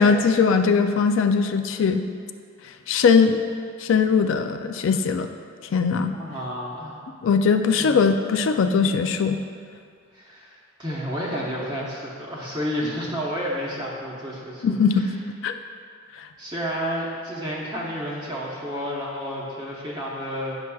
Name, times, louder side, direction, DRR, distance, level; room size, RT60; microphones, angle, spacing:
voice 1, 0.0-2.0 2.9-3.4 3.8-5.3 5.7-6.1 7.2-9.4 14.6-15.1 15.4-15.6 16.2-16.3, left 5 dB, 65° left, 7 dB, 0.3 m, -20 dB
voice 2, 6.1-6.9 7.8-8.0 10.1-15.1 16.4-20.6, equal, 20° right, -6 dB, 0.8 m, -31 dB
9.7 x 5.9 x 2.3 m, 2.2 s
head